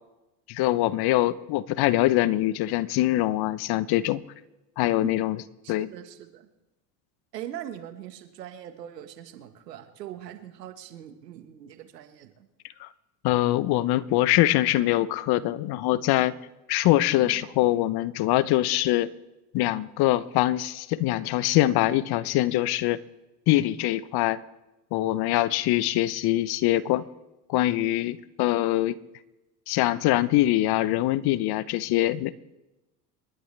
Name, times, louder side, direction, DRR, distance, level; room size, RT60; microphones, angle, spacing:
voice 1, 0.5-4.2 4.8-5.4 5.7-5.9 12.8-12.9 13.2-16.3 16.7-19.1 19.5-23.0 23.5-24.4 24.9-27.1 27.5-29.0 29.7-32.3, left 15 dB, 55° left, 17 dB, 0.9 m, -23 dB
voice 2, 5.6-6.5 7.3-12.5 17.1-17.5, right 11 dB, 85° right, 8 dB, 1.6 m, -41 dB
28.5 x 11.5 x 3.4 m, 0.99 s
hypercardioid pair, 80°, 47 cm